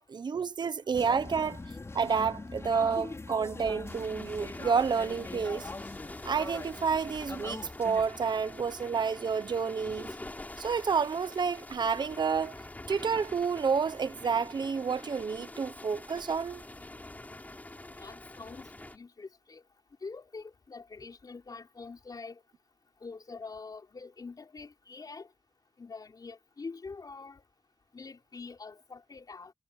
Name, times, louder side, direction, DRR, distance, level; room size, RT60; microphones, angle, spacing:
voice 1, 0.0-1.6 1.9-5.7 6.2-10.1 10.6-12.6 12.9-16.6, right 5 dB, 80° right, 0.9 m, -30 dB
sound 1, 0.9-8.1, left 3 dB, 40° left, 5.8 m, -42 dB
sound 2, 3.8-19.0, left 2 dB, 20° left, 3.7 m, -46 dB
voice 2, 17.9-19.6 20.0-22.4 23.0-25.3 25.8-27.4 27.9-29.5, left 4 dB, 60° left, 5.7 m, -45 dB
wide cardioid pair, 110°, 7 cm